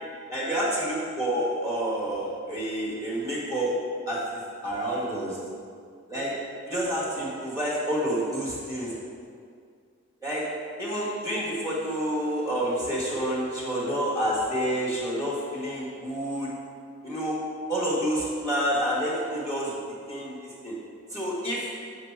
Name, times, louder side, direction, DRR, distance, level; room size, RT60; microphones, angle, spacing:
voice 1, 0.3-3.7 4.1-5.4 6.1-6.3 6.6-8.9 10.2-10.5 10.8-16.5 17.0-17.4 17.7-19.7 20.1-20.8 21.1-21.6, equal, 15° right, -7 dB, 1.7 m, -28 dB
6.5 x 5.2 x 4.7 m, 2.2 s
head